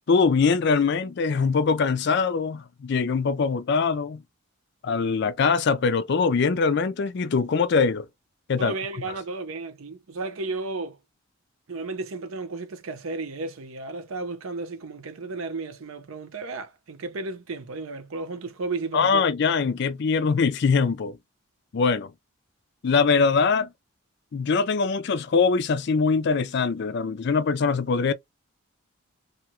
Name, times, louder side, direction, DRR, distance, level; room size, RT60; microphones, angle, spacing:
voice 1, 0.1-4.2 4.8-8.1 8.5-8.7 18.9-21.2 21.7-22.1 22.8-23.7 24.3-28.1, left 5 dB, 50° left, 0.4 m, -22 dB
voice 2, 8.6-11.0 11.7-19.2, right 3 dB, 75° right, 0.6 m, -33 dB
2.8 x 2.3 x 2.9 m
head